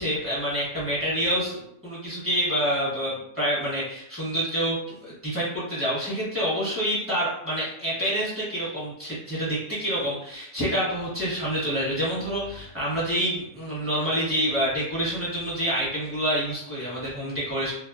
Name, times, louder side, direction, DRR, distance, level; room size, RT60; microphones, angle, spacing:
voice 1, 0.0-17.7, equal, 10° right, -9 dB, 0.9 m, -27 dB
2.7 x 2.1 x 2.5 m, 0.77 s
omnidirectional pair, 1.6 m